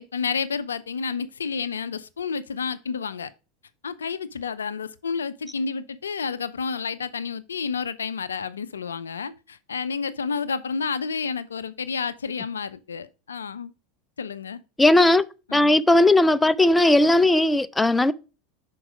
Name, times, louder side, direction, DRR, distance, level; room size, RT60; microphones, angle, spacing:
voice 1, 0.0-3.3 3.8-13.7 14.2-14.6 15.5-15.8, left 5 dB, 85° left, 0.4 m, -30 dB
voice 2, 14.8-15.2 15.5-18.1, left 1 dB, 10° left, 0.4 m, -17 dB
6.1 x 4.5 x 4.9 m
hypercardioid pair, 85°, 0 cm